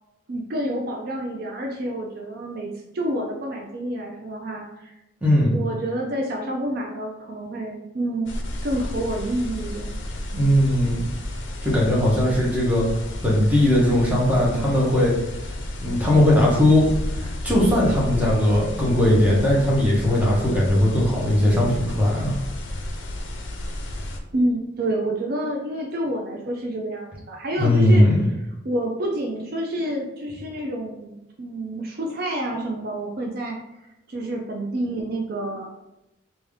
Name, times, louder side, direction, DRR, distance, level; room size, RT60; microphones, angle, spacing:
voice 1, 0.3-4.9 5.5-9.9 24.3-28.0 28.6-33.6 34.1-35.7, right 1 dB, 50° right, 0 dB, 0.4 m, -28 dB
voice 2, 5.2-5.6 10.3-11.0 11.6-12.8 13.2-15.1 15.8-16.8 17.2-22.4 27.6-28.3, left 1 dB, 10° right, -5 dB, 0.9 m, -19 dB
sound 1, 8.3-24.2, left 1 dB, 70° left, 0.5 m, -32 dB
3.4 x 2.6 x 3.4 m, 0.90 s
head